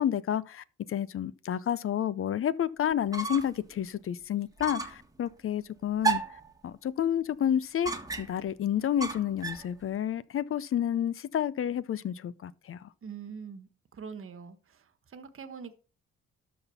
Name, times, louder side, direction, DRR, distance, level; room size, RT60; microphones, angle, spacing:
voice 1, 0.0-6.2 6.6-7.9 8.2-12.9, left 10 dB, 45° left, 0.5 m, -30 dB
sound 1, 2.9-3.7 4.0-4.1 4.6-5.1 6.0-6.5 7.8-8.5 9.0-9.7, right 4 dB, 10° right, 1.5 m, -32 dB
voice 2, 13.0-14.8 15.1-15.8, right 6 dB, 45° right, 1.3 m, -43 dB
12.5 x 4.2 x 5.7 m
cardioid pair, 90°, 30 cm